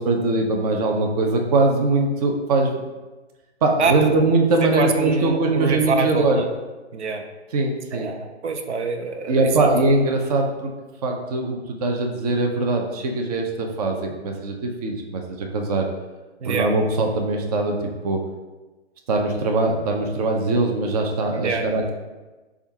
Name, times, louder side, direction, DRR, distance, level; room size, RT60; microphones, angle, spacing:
voice 1, 0.0-2.9 3.6-6.5 7.5-8.1 9.3-10.7 11.0-15.9 16.5-18.3 19.1-21.9, right 2 dB, 35° right, 2 dB, 0.6 m, -21 dB
voice 2, 4.6-6.5 6.9-7.2 7.9-9.7 16.4-16.7 21.3-21.7, right 4 dB, 85° right, 6 dB, 0.6 m, -25 dB
6.7 x 2.4 x 2.7 m, 1.2 s
hypercardioid pair, 135°, 34 cm